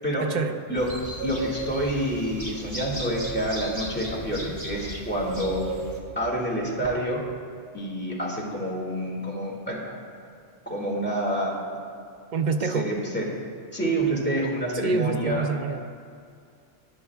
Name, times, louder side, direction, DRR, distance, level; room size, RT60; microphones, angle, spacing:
voice 1, 0.2-0.6 12.3-12.9 14.7-15.8, right 5 dB, 60° right, 7 dB, 0.5 m, -26 dB
sound 1, 0.8-6.0, right 1 dB, 25° right, 1.4 m, -34 dB
voice 2, 1.2-5.6 6.2-7.2 7.7-9.9 10.7-11.5 12.6-13.3 13.7-15.4, right 1 dB, 10° left, -3 dB, 2.2 m, -28 dB
19.5 x 10.0 x 2.4 m, 2.4 s
omnidirectional pair, 1.2 m